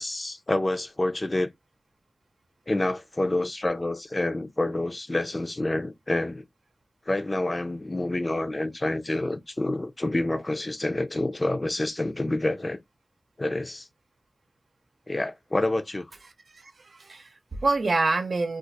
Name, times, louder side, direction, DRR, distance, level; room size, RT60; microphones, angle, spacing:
voice 1, 0.0-1.5 2.7-6.4 7.1-12.8 13.4-13.9 15.1-16.1, left 2 dB, 35° left, 0.5 m, -28 dB
voice 2, 16.5-18.6, right 3 dB, 85° right, 0.7 m, -27 dB
2.5 x 2.4 x 4.0 m
wide cardioid pair, 80°, 0 cm